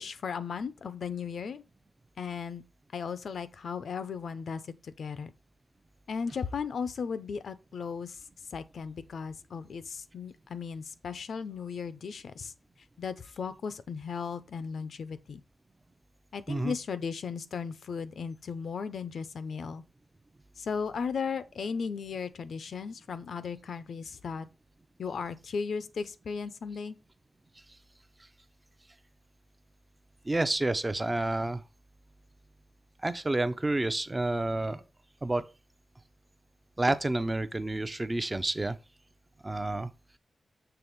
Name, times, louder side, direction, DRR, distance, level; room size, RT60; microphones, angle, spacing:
voice 1, 0.0-1.6 2.2-2.6 2.9-5.3 6.1-8.2 8.5-12.5 13.0-15.4 16.3-19.8 20.6-24.5 25.0-27.0, left 6 dB, 70° left, 0.6 m, -36 dB
voice 2, 30.2-31.6 33.0-34.8 35.2-35.4 36.8-38.8 39.4-39.9, right 2 dB, 15° right, 0.6 m, -29 dB
6.9 x 3.5 x 6.0 m
wide cardioid pair, 170°, 0 cm